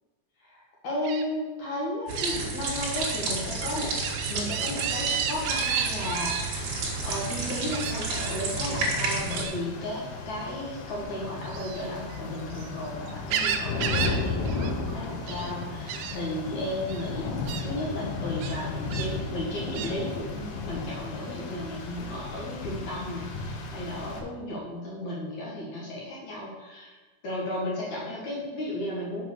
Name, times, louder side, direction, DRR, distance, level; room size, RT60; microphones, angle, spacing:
voice 1, 0.4-4.0 4.3-27.0 27.2-29.3, left 1 dB, 60° left, -4 dB, 2.0 m, -34 dB
Gull seagull, 1.0-1.2 2.2-2.4 2.9-3.2 3.6-6.4 7.7-8.4 9.3-9.6 11.4-12.7 13.1-14.2 14.5-14.7 15.0-15.5 15.9-16.2 16.9-17.0 17.5-17.7 18.4-19.1 19.7-19.9, right 8 dB, 80° right, 2.5 m, -32 dB
sound 1, 2.1-9.4, right 3 dB, 55° right, 2.3 m, -31 dB
Rain, 6.6-24.2, left 3 dB, 85° left, 3.6 m, -35 dB
7.1 x 6.1 x 6.5 m, 1.3 s
omnidirectional pair, 5.6 m